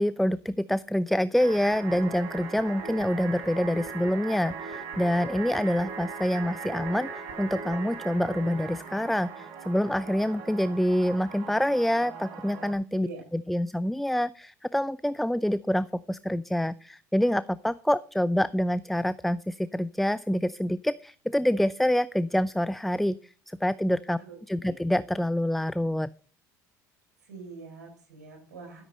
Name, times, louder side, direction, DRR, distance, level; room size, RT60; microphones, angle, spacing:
voice 1, 0.0-24.2 24.5-26.1, equal, ahead, 18 dB, 0.4 m, -26 dB
sound 1, 1.4-12.7, right 5 dB, 65° right, 4.6 m, -39 dB
voice 2, 12.9-13.2 24.2-24.4 24.6-24.7 27.3-28.9, right 4 dB, 90° right, 0 dB, 6.5 m, -44 dB
13.0 x 8.1 x 5.3 m, 0.41 s
hypercardioid pair, 75°, 9 cm